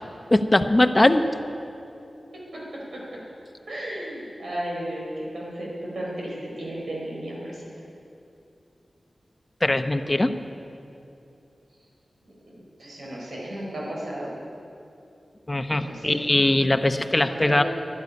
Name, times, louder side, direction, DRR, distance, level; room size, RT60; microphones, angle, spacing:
voice 1, 0.3-1.3 9.6-10.3 15.5-17.6, left 1 dB, 30° left, 8 dB, 0.9 m, -20 dB
voice 2, 2.5-3.2 3.7-7.9 12.5-14.4 15.7-16.3 17.2-17.6, right 1 dB, 85° right, -4 dB, 4.7 m, -34 dB
12.5 x 11.0 x 9.7 m, 2.7 s
cardioid pair, 45°, 0 cm